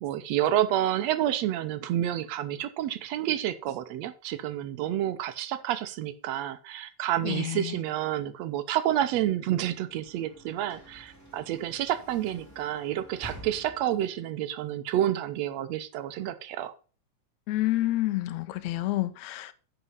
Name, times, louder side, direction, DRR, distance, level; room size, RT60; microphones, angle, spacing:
voice 1, 0.0-16.7, right 12 dB, 75° right, 1.8 m, -29 dB
voice 2, 7.2-7.8 17.5-19.5, left 16 dB, 75° left, 1.8 m, -29 dB
Sliding door / Slam, 9.6-14.3, right 1 dB, 5° left, 2.5 m, -49 dB
10.0 x 5.0 x 5.4 m
omnidirectional pair, 3.3 m